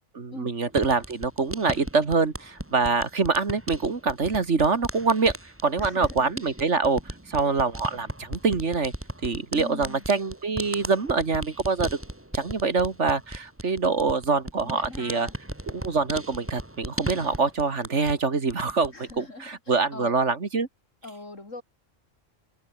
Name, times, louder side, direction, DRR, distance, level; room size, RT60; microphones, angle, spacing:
voice 1, 0.2-5.4 5.6-7.0 7.3-8.9 9.2-12.0 12.3-15.3 15.7-20.7, right 4 dB, 65° right, 2.4 m, -25 dB
sound 1, 0.7-18.2 18.5-19.2, right 1 dB, 10° right, 2.1 m, -37 dB
voice 2, 5.8-6.3 9.5-10.0 14.6-15.3 18.9-20.1 21.0-21.6, left 2 dB, 75° left, 5.0 m, -41 dB
omnidirectional pair, 1.3 m